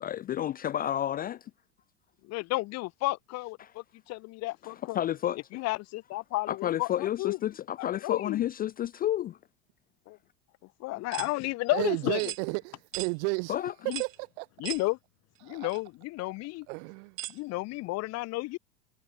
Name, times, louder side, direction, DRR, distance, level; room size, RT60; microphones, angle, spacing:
voice 1, 0.0-1.4 3.6-3.7 4.9-5.4 6.5-9.4 13.5-13.7, left 11 dB, 25° left, 0.5 m, -30 dB
voice 2, 2.2-5.0 5.5-7.4 7.8-8.4 10.1-10.2 10.8-12.2 13.9-14.0 14.6-15.0 15.4-16.7 17.3-18.6, left 21 dB, 45° left, 0.9 m, -32 dB
sound 1, 11.1-11.3 12.2-12.4 12.9-13.1 13.9-14.2 14.6-14.9 15.7-15.8 17.2-17.4, right 15 dB, 85° right, 0.6 m, -37 dB
voice 3, 11.7-13.6 14.0-14.5 15.4-15.7 16.7-17.2, right 36 dB, 60° right, 2.4 m, -32 dB
hypercardioid pair, 90°, 38 cm